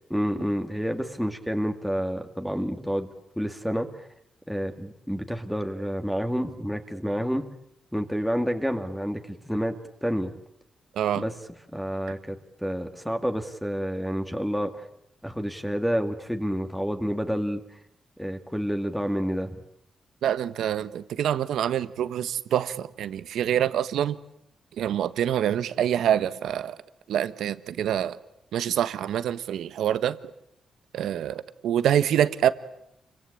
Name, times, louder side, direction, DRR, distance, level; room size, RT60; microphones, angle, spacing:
voice 1, 0.1-3.1 3.4-4.1 4.5-7.4 7.9-9.7 10.0-10.3 11.2-11.3 11.7-14.9 15.2-17.6 18.2-19.6, equal, ahead, 2.3 m, -29 dB
voice 2, 20.2-24.2 24.8-26.7 27.1-28.2 28.5-30.2 30.9-32.5, right 10 dB, 90° right, 1.3 m, -26 dB
29.0 x 24.0 x 8.7 m
cardioid pair, 115°, 0 cm